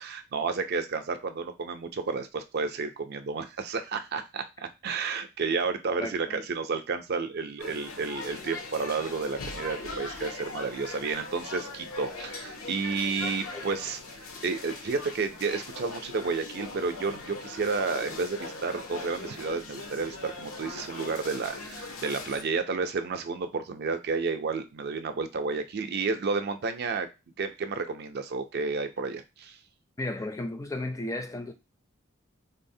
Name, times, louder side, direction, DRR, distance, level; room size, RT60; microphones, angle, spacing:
voice 1, 0.0-27.1 27.4-29.6, right 4 dB, 50° right, 0.4 m, -31 dB
voice 2, 6.0-6.4 13.2-13.7 30.0-31.5, left 2 dB, 15° left, 0.4 m, -35 dB
sound 1, 7.6-22.4, left 3 dB, 90° left, 0.7 m, -40 dB
3.9 x 2.0 x 2.6 m
head